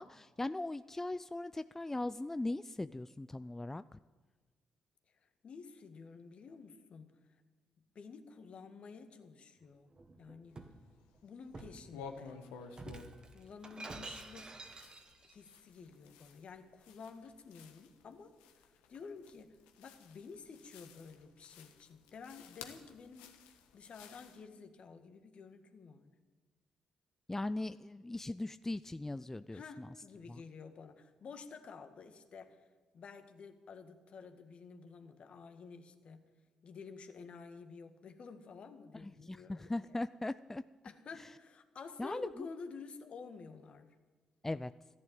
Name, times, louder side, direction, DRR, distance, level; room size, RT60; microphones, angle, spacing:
voice 1, 0.0-4.0 27.3-29.9 30.3-30.4 39.3-40.6 42.0-42.5 44.4-44.7, left 2 dB, 15° left, 13 dB, 0.4 m, -39 dB
voice 2, 5.1-7.2 7.9-10.7 11.2-12.4 13.3-14.6 15.2-26.1 29.5-32.7 32.9-36.3 36.6-40.0 40.8-43.9, left 5 dB, 55° left, 7 dB, 1.8 m, -51 dB
Shatter, 9.9-10.8 11.5-11.9 12.7-15.3, right 3 dB, 40° right, 1.9 m, -49 dB
sound 1, 10.5-11.3 11.6-24.4, left 6 dB, 85° left, 1.3 m, -54 dB
14.5 x 11.0 x 8.9 m, 1.3 s
hypercardioid pair, 45°, 2 cm